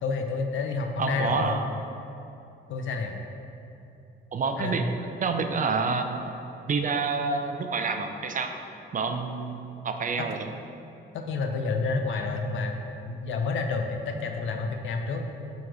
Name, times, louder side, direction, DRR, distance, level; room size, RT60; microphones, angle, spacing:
voice 1, 0.0-1.6 2.7-3.2 4.6-4.9 11.1-12.8 13.1-15.3, left 4 dB, 75° left, 4 dB, 0.8 m, -29 dB
voice 2, 1.0-1.6 4.3-6.3 6.7-8.5 8.9-10.5, right 4 dB, 40° right, 6 dB, 0.7 m, -28 dB
9.1 x 4.2 x 5.0 m, 2.8 s
cardioid pair, 90°, 20 cm